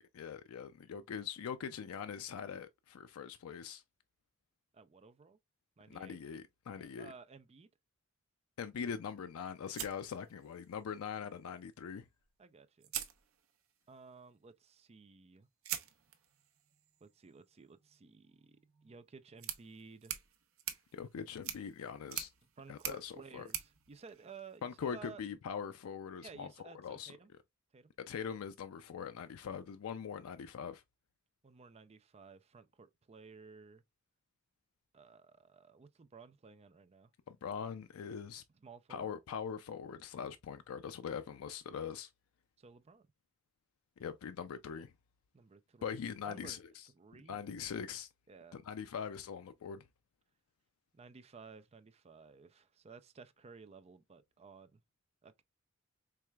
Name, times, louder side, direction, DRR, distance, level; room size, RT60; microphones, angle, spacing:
voice 1, 0.0-3.8 5.9-7.1 8.6-12.1 20.9-22.3 22.7-23.5 24.6-27.1 28.1-30.8 37.3-38.4 38.9-42.1 44.0-44.9 45.8-46.9 47.3-48.1 48.5-49.9, left 7 dB, 85° left, 0.4 m, -42 dB
voice 2, 4.7-5.4 5.8-6.2 6.7-7.7 12.4-12.9 13.9-15.5 17.0-20.1 22.6-25.2 26.2-27.3 27.7-27.9 31.4-33.8 34.9-37.1 38.6-39.1 42.6-43.1 45.3-46.0 46.2-46.6 47.0-47.5 48.3-48.6 50.9-54.8 55.2-55.4, right 4 dB, 30° right, 0.4 m, -55 dB
sound 1, 9.7-10.9 12.2-12.3 12.8-13.8 15.6-24.8, right 11 dB, 70° right, 0.8 m, -46 dB
4.7 x 3.3 x 2.2 m
head